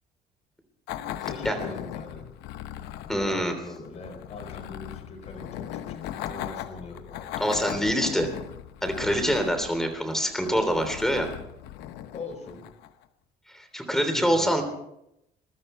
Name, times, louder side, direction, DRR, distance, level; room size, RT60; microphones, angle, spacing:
sound 1, 0.9-13.0, left 11 dB, 90° left, 0.9 m, -38 dB
voice 1, 1.2-2.3 2.6-7.3 12.1-12.7 13.9-14.6, left 3 dB, 40° left, 4 dB, 4.7 m, -41 dB
voice 2, 3.1-3.5 7.4-8.3 8.8-11.3 13.5-14.6, equal, ahead, 7 dB, 3.2 m, -25 dB
21.5 x 13.0 x 4.4 m, 0.81 s
cardioid pair, 110°, 17 cm